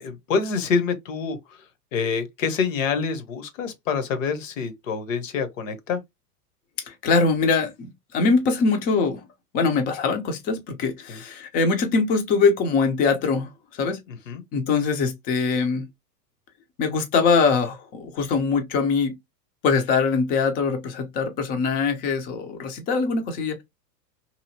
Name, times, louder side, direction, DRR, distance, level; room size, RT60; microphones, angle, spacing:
voice 1, 0.0-1.6 1.9-6.0 11.1-11.2 14.1-14.4, left 5 dB, 55° left, 0.8 m, -26 dB
voice 2, 6.9-9.2 9.5-14.0 14.5-15.9 16.8-19.2 19.6-23.6, left 4 dB, 20° left, 0.5 m, -22 dB
2.9 x 2.7 x 2.6 m
figure-of-eight pair, 95°, 48 cm